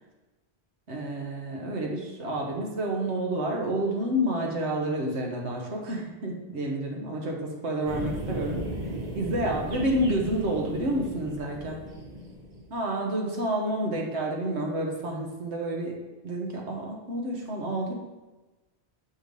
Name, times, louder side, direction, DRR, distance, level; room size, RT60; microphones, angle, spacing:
voice 1, 0.9-8.6 9.1-11.8 12.7-15.9 16.2-17.9, right 1 dB, 85° right, 0 dB, 1.4 m, -29 dB
sound 1, 7.8-12.8, right 1 dB, 40° right, 1.0 m, -36 dB
6.3 x 3.2 x 5.2 m, 1.1 s
omnidirectional pair, 1.1 m